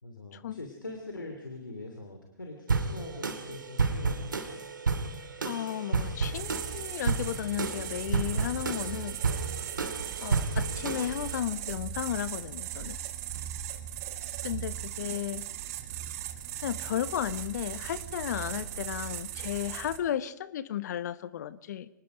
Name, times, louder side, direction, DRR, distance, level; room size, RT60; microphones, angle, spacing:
voice 1, 0.0-4.4 14.4-14.8, left 2 dB, 90° left, 3 dB, 2.8 m, -43 dB
sound 1, 2.7-11.4, right 4 dB, 80° right, 2.2 m, -31 dB
voice 2, 5.4-9.2 10.2-13.0 14.4-15.5 16.6-21.9, left 11 dB, 60° left, 16 dB, 1.1 m, -34 dB
sound 2, 6.3-20.0, right 11 dB, 50° right, 2.2 m, -38 dB
25.0 x 20.0 x 5.1 m, 0.80 s
figure-of-eight pair, 110°, 10 cm